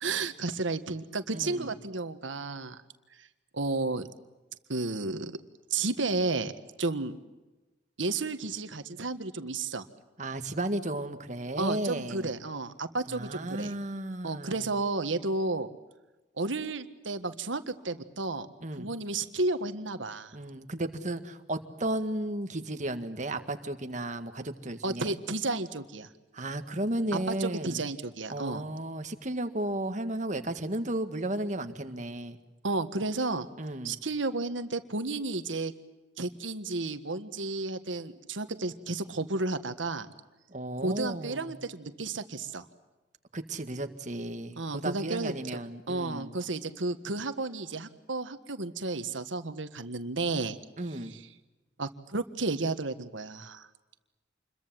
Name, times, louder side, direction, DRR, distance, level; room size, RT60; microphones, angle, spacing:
voice 1, 0.0-2.8 3.5-4.1 4.7-5.3 5.7-6.5 6.8-7.1 8.0-9.9 11.6-13.7 14.2-15.7 16.4-18.5 18.8-20.3 24.8-26.1 27.1-28.6 32.6-33.5 33.8-35.7 36.2-40.1 40.8-42.6 44.6-45.3 45.9-50.6 51.1-51.2 51.8-53.7, right 3 dB, 90° right, 10 dB, 1.6 m, -32 dB
voice 2, 1.3-1.7 10.2-12.3 13.1-14.6 18.6-18.9 20.3-25.2 26.3-27.8 28.3-32.4 33.6-34.0 40.5-41.6 43.3-46.3 50.8-51.1, right 1 dB, 40° right, 8 dB, 1.8 m, -34 dB
28.0 x 22.5 x 7.6 m, 1.1 s
head